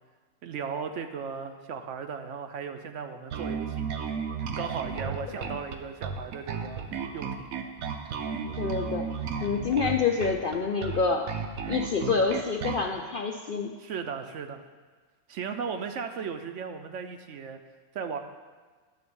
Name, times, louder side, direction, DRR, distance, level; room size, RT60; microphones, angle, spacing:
voice 1, 0.4-3.9 4.4-6.8 7.1-7.5 13.8-14.6 15.3-17.6 17.9-18.2, right 6 dB, 70° right, 7 dB, 0.9 m, -36 dB
Bass guitar, 3.3-12.9, right 6 dB, 85° right, 1.2 m, -34 dB
voice 2, 8.6-9.1 9.4-11.3 11.7-13.7, left 5 dB, 60° left, 2 dB, 0.6 m, -27 dB
10.5 x 4.0 x 6.9 m, 1.4 s
omnidirectional pair, 1.4 m